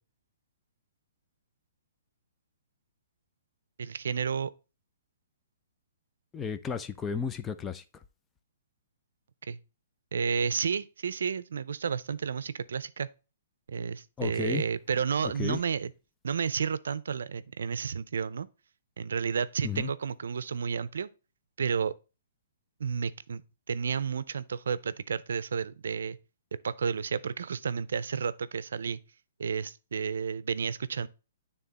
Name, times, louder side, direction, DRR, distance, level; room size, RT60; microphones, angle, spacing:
voice 1, 3.8-4.5 9.5-9.6 10.1-13.1 13.7-15.9 16.2-18.5 19.0-21.1 21.6-21.9 22.8-23.4 23.7-26.2 26.6-29.0 29.4-31.1, right 6 dB, 80° right, 0.5 m, -31 dB
voice 2, 6.3-7.8 14.2-14.6 15.2-15.6 19.6-19.9, left 6 dB, 15° left, 0.5 m, -33 dB
9.2 x 3.6 x 4.1 m
hypercardioid pair, 150°, 0 cm